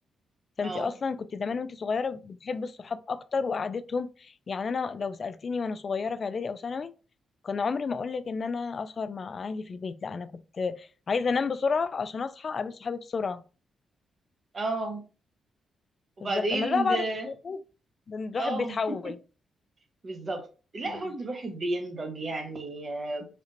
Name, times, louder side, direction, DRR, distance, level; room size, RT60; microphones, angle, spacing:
voice 1, 0.6-6.9 7.4-13.4 16.2-17.6 18.1-19.2 20.8-21.0, left 5 dB, 50° left, 0.3 m, -31 dB
voice 2, 14.5-15.0 16.2-17.3 18.4-19.0 20.0-20.5 20.7-23.3, right 2 dB, 45° right, 1.0 m, -32 dB
4.3 x 2.5 x 2.5 m
cardioid pair, 70°, 0 cm